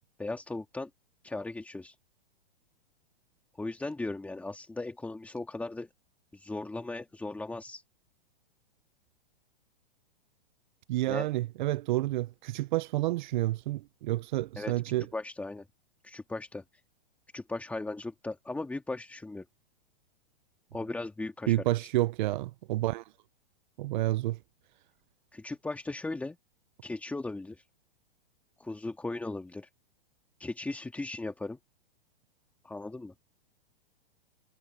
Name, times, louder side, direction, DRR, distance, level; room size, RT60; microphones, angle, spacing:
voice 1, 0.2-0.9 1.2-2.0 3.6-5.9 6.3-7.8 11.1-11.3 14.6-14.7 15.1-15.7 16.0-16.6 17.3-19.4 20.7-21.6 25.3-26.4 26.8-27.6 28.6-29.7 30.4-31.6 32.6-33.1, left 2 dB, 5° left, 2.1 m, -37 dB
voice 2, 10.9-15.1 21.5-23.0 23.8-24.4, right 16 dB, 55° right, 0.6 m, -29 dB
hypercardioid pair, 145°, 29 cm